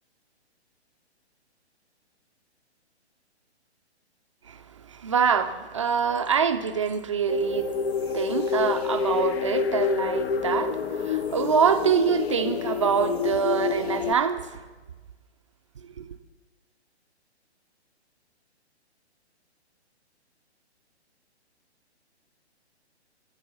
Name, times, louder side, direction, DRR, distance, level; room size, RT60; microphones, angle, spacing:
voice 1, 4.9-7.7 8.0-14.6 16.0-16.1, right 7 dB, 30° right, 0.4 m, -25 dB
sound 1, 7.3-14.1, left 6 dB, 65° left, 0.7 m, -28 dB
13.0 x 4.7 x 6.8 m
figure-of-eight pair, 135°, 34 cm